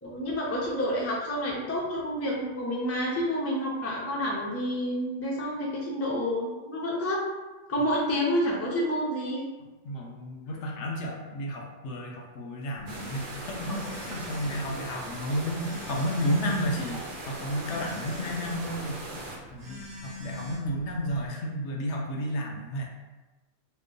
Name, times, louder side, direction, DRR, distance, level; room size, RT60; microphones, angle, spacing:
voice 1, 0.0-7.2 7.7-9.5, equal, 25° left, -4 dB, 0.3 m, -29 dB
voice 2, 9.8-19.0 19.5-22.8, equal, 70° left, 0 dB, 0.8 m, -32 dB
Telephone, 12.8-21.3, left 2 dB, 35° right, 1.3 m, -44 dB
sound 1, 12.9-19.4, right 1 dB, 55° right, 0.6 m, -39 dB
2.9 x 2.2 x 3.8 m, 1.2 s
omnidirectional pair, 1.3 m